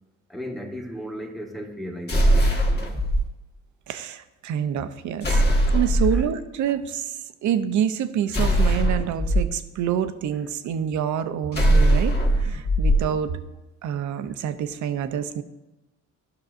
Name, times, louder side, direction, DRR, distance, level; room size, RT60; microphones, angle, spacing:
voice 1, 0.3-2.9 6.1-6.3, equal, ahead, 2 dB, 1.1 m, -36 dB
sound 1, 2.1-3.2 5.2-6.3 8.3-9.4 11.5-13.0, right 1 dB, 35° left, 1.5 m, -20 dB
voice 2, 3.9-5.4 5.7-13.4 13.8-15.4, right 9 dB, 75° right, 11 dB, 0.6 m, -27 dB
13.0 x 5.9 x 2.5 m, 1.0 s
cardioid pair, 90°, 30 cm